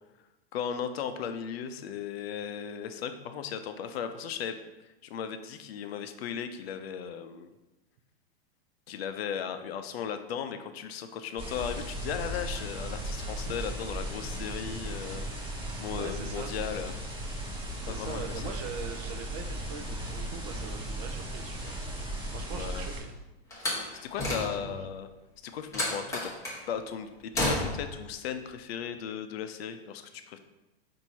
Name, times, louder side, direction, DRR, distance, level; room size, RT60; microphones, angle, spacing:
voice 1, 0.5-4.5 5.0-7.6 8.9-15.3 15.8-17.0 17.9-18.6 22.5-22.9 24.0-25.1 25.4-26.3 26.7-30.4, left 8 dB, 70° left, 9 dB, 0.6 m, -36 dB
sound 1, 11.4-23.0, right 1 dB, 15° right, 1.1 m, -36 dB
voice 2, 15.9-16.5 17.8-21.7 22.3-23.1 24.4-24.8, right 6 dB, 35° right, 6 dB, 0.5 m, -42 dB
Slam, 23.5-24.9 25.7-26.6 27.3-28.0, left 1 dB, 10° left, 1.0 m, -31 dB
4.4 x 2.7 x 4.1 m, 1.0 s
hypercardioid pair, 135°, 32 cm